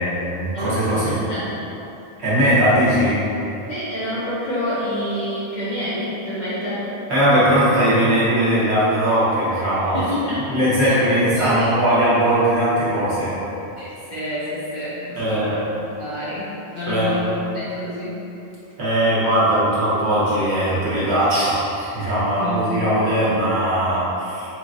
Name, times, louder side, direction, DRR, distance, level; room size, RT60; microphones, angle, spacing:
voice 1, 0.0-1.2 2.2-3.2 7.1-10.0 10.5-13.4 15.2-15.5 16.9-17.1 18.8-24.5, right 1 dB, 70° right, -10 dB, 1.5 m, -19 dB
voice 2, 0.5-1.6 3.7-6.9 9.9-11.8 13.8-18.2 22.4-23.2, equal, 40° left, -12 dB, 1.3 m, -28 dB
4.9 x 3.1 x 2.5 m, 3.0 s
omnidirectional pair, 1.1 m